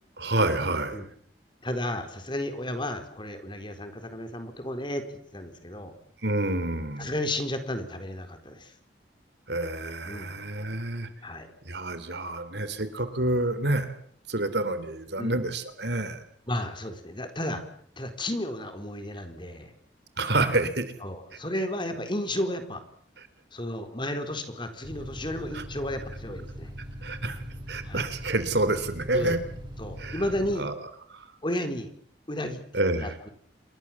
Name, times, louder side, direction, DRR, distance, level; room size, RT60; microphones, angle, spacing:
voice 1, 0.2-1.0 6.2-7.1 9.5-11.1 11.7-13.9 14.3-16.2 20.2-20.9 25.5-25.6 27.0-29.4 30.0-30.2 30.6-30.7 31.1-31.3 32.7-33.1, right 2 dB, 65° right, 11 dB, 3.6 m, -28 dB
voice 2, 1.6-5.9 7.0-8.7 10.0-10.4 11.2-11.5 15.2-15.4 16.5-17.6 18.0-19.7 21.0-22.8 23.5-26.7 27.8-28.0 29.1-29.4 29.8-30.7 31.4-31.9 32.3-32.6 33.0-33.3, left 1 dB, 25° left, 8 dB, 4.1 m, -33 dB
sound 1, 24.8-30.5, equal, 25° right, 6.7 m, -41 dB
28.5 x 22.5 x 7.4 m, 0.62 s
head